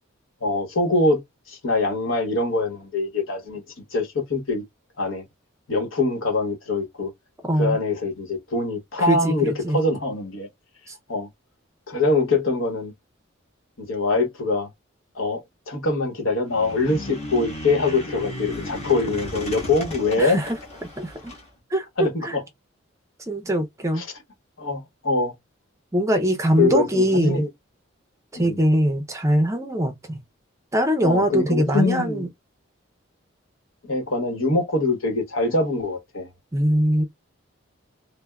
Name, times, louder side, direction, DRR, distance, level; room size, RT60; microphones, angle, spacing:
voice 1, 0.4-3.6 3.9-4.6 5.0-5.2 5.7-7.1 7.6-10.5 11.1-11.3 11.9-12.9 13.9-14.7 15.1-20.4 22.0-22.4 23.9-24.1 24.6-25.3 26.6-27.5 28.3-28.6 31.0-32.3 33.8-36.3, left 3 dB, 80° left, 1.1 m, -23 dB
voice 2, 7.4-7.8 9.1-9.8 10.9-11.0 20.2-20.6 21.0-21.3 21.7-22.4 23.3-24.0 25.9-27.5 28.3-30.2 30.7-32.3 36.5-37.0, right 1 dB, 15° right, 0.5 m, -22 dB
sound 1, 16.5-21.4, left 1 dB, 35° left, 1.2 m, -35 dB
3.3 x 2.1 x 2.2 m
head